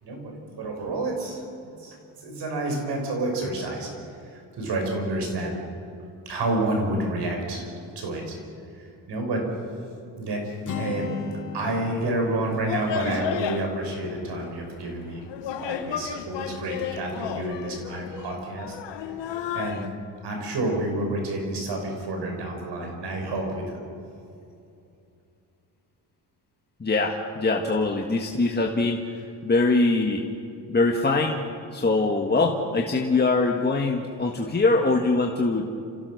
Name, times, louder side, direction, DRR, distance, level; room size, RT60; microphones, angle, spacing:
voice 1, 0.0-3.9 4.2-5.5 6.3-7.7 8.0-8.4 8.8-9.5 10.1-11.1 11.5-15.2 15.6-18.8 19.5-19.9 20.2-23.8, right 2 dB, 70° right, 2 dB, 6.0 m, -29 dB
Acoustic guitar, 10.6-14.6, left 5 dB, 45° left, 3.2 m, -37 dB
sound 1, 12.0-19.9, left 8 dB, 75° left, 1.4 m, -34 dB
voice 2, 26.8-29.1 29.4-30.2 30.7-35.7, left 3 dB, 25° left, 1 dB, 1.7 m, -23 dB
28.5 x 15.5 x 6.5 m, 2.6 s
cardioid pair, 90°, 43 cm